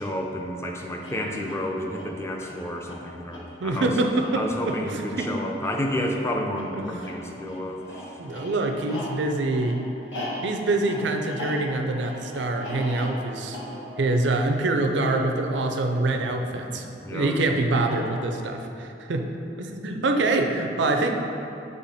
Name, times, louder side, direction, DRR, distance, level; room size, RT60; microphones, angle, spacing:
voice 1, 0.0-3.9 4.3-8.1 16.1-17.5, left 1 dB, 15° left, 1 dB, 0.5 m, -31 dB
sound 1, 1.0-16.7 17.7-18.5, left 1 dB, 85° left, 1.3 m, -40 dB
voice 2, 3.6-5.3 6.7-6.8 8.2-9.8 10.4-13.6 14.0-16.8 17.1-19.3 19.6-21.2, right 2 dB, 75° right, 4 dB, 0.5 m, -25 dB
7.7 x 3.4 x 4.1 m, 2.8 s
head